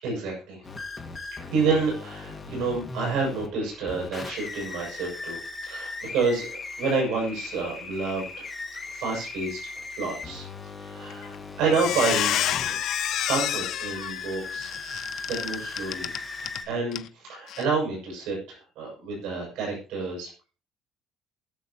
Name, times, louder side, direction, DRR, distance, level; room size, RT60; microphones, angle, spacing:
voice 1, 0.0-0.6 1.5-8.3 8.9-10.5 10.8-12.8 13.2-14.7 15.3-16.1 16.7-20.3, right 4 dB, 85° right, -2 dB, 7.1 m, -29 dB
sound 1, 0.6-16.6, left 3 dB, 10° left, 1.7 m, -38 dB
Squeak, 11.1-11.4 11.7-16.6 16.9-17.1 17.5-17.6, left 12 dB, 55° left, 0.6 m, -29 dB
21.0 x 7.4 x 3.0 m, 0.35 s
cardioid pair, 165°, 0 cm